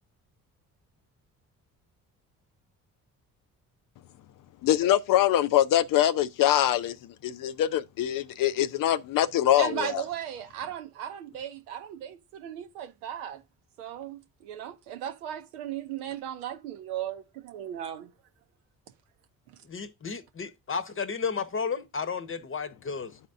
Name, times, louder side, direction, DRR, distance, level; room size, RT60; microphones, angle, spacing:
voice 1, 4.6-7.0 7.2-9.9, left 12 dB, 50° left, 0.5 m, -23 dB
voice 2, 9.6-13.4 13.8-18.1, right 10 dB, 80° right, 0.8 m, -36 dB
voice 3, 19.6-23.2, left 5 dB, 30° left, 0.9 m, -33 dB
11.5 x 4.2 x 2.5 m
hypercardioid pair, 45°, 44 cm